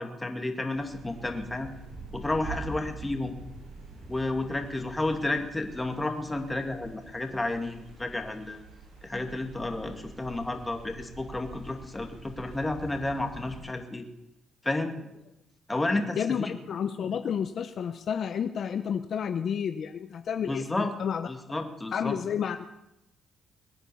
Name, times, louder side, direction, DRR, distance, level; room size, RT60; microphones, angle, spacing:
voice 1, 0.0-1.7 2.1-3.3 4.1-8.6 9.0-14.1 14.6-15.0 15.7-16.5 20.5-20.9 21.2-22.2, left 2 dB, 15° left, 5 dB, 2.4 m, -31 dB
sound 1, 0.7-13.6, right 3 dB, 90° right, 6.9 m, -45 dB
voice 2, 16.2-21.3 21.9-22.6, left 8 dB, 60° left, 9 dB, 0.8 m, -31 dB
21.5 x 8.9 x 7.0 m, 0.88 s
cardioid pair, 90°, 0 cm